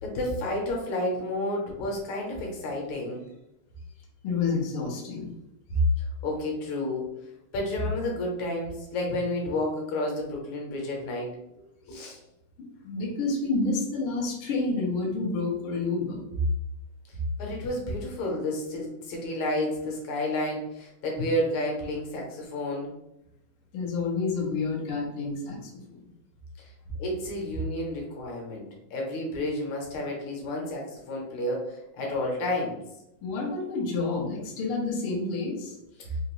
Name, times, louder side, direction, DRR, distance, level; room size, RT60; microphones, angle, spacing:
voice 1, 0.0-3.2 6.0-7.1 7.5-11.3 11.8-12.2 17.4-22.9 26.6-26.7 27.0-32.8 36.0-36.1, left 1 dB, 70° left, -1 dB, 2.0 m, -31 dB
voice 2, 4.2-5.3 5.7-5.8 12.6-16.2 17.1-17.2 23.7-26.1 33.2-35.8, left 3 dB, 90° left, -3 dB, 1.1 m, -29 dB
5.1 x 2.5 x 3.0 m, 0.87 s
omnidirectional pair, 3.8 m